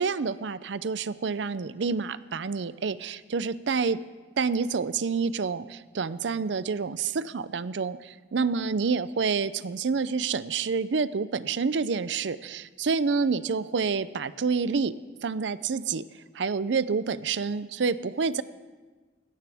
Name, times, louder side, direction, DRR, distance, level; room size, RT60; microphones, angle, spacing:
voice 1, 0.0-4.0 4.4-5.6 6.0-7.0 7.3-8.0 8.3-12.4 12.8-14.9 15.2-16.0 16.4-18.4, right 5 dB, 70° right, 16 dB, 0.5 m, -28 dB
19.5 x 16.5 x 3.5 m, 1.3 s
head